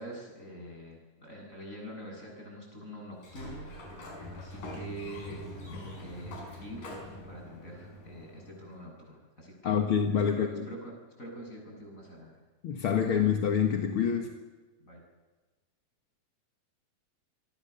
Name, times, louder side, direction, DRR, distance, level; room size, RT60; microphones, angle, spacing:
voice 1, 0.0-4.1 4.3-5.4 5.7-9.8 10.3-10.9 11.2-12.4 14.2-14.3 14.8-15.0, right 1 dB, 20° left, 0 dB, 8.4 m, -45 dB
Sliding door, 3.1-8.8, left 1 dB, 70° left, 6.7 m, -44 dB
voice 2, 9.6-10.7 12.6-14.4, left 7 dB, 50° left, 4 dB, 1.8 m, -27 dB
27.5 x 23.5 x 7.0 m, 1.2 s
omnidirectional pair, 4.0 m